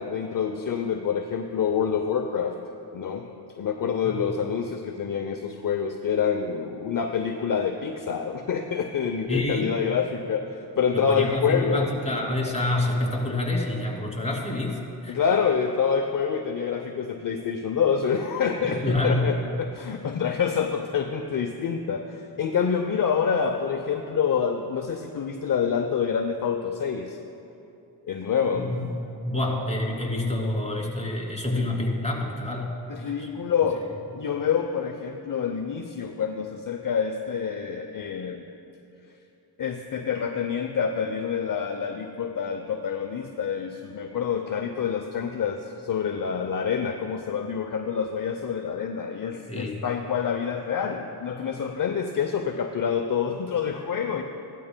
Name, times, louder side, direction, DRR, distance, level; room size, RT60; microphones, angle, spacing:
voice 1, 0.0-2.6 2.9-11.9 15.1-27.2 28.0-28.7 31.6-31.7 32.9-33.8 34.1-38.4 39.6-54.2, left 7 dB, 45° left, 5 dB, 0.7 m, -27 dB
voice 2, 9.3-9.7 10.9-15.2 18.6-19.3 28.5-28.9 29.2-32.7 33.0-33.3 49.5-49.8, left 1 dB, 15° left, -2 dB, 2.6 m, -27 dB
16.5 x 12.0 x 2.2 m, 2.8 s
cardioid pair, 45°, 45 cm